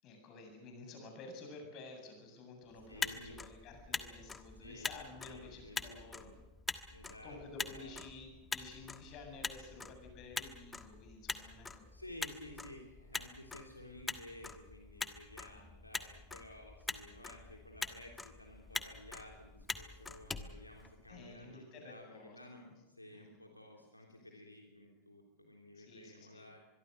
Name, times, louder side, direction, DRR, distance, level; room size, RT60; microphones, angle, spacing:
voice 1, 0.0-6.4 7.2-11.8 15.4-15.6 21.1-22.4 23.1-23.3 23.8-23.9 25.8-26.5, left 3 dB, 35° left, 4 dB, 7.8 m, -52 dB
Motor vehicle (road), 2.8-21.3, left 4 dB, 15° left, 1.4 m, -44 dB
voice 2, 2.9-3.4 4.6-4.9 5.2-6.3 6.9-7.9 11.9-26.6, left 1 dB, 85° left, 1 dB, 3.3 m, -54 dB
25.0 x 22.5 x 6.7 m, 0.96 s
figure-of-eight pair, 90°, 0 cm